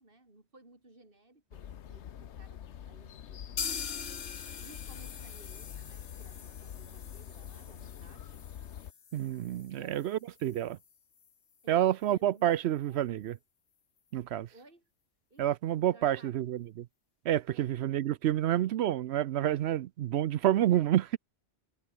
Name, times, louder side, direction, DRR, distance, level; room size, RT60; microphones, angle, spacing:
voice 1, 0.0-2.6 2.9-3.9 4.3-8.3 9.6-10.3 11.6-13.1 14.5-14.8 15.3-15.4 15.7-16.3 17.5-18.0 20.6-21.0, right 2 dB, 55° right, 4.4 m, -58 dB
sound 1, 1.5-8.9, left 9 dB, 85° left, 1.1 m, -46 dB
sound 2, 3.6-11.3 11.6-11.7 12.0-12.1 12.5-12.6, left 6 dB, 65° left, 1.4 m, -43 dB
voice 2, 9.1-10.8 11.7-13.4 14.1-14.5 15.4-16.9 17.3-21.2, right 12 dB, 75° right, 0.8 m, -29 dB
omnidirectional pair, 1.1 m